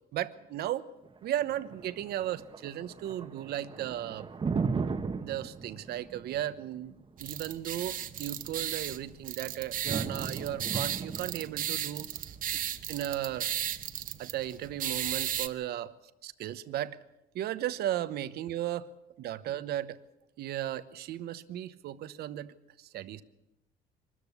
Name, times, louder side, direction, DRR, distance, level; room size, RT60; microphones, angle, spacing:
voice 1, 0.1-0.9 1.2-4.3 5.2-6.9 7.2-12.1 12.5-12.6 12.9-13.5 14.2-15.9 16.2-17.0 17.3-18.9 19.2-20.0 20.4-23.2, right 12 dB, 70° right, 13 dB, 1.0 m, -35 dB
Thunder, 1.0-15.0, right 5 dB, 30° right, 1.2 m, -38 dB
windup angel, 7.2-15.5, right 10 dB, 55° right, 1.0 m, -35 dB
24.0 x 13.5 x 8.3 m, 0.91 s
cardioid pair, 110°, 17 cm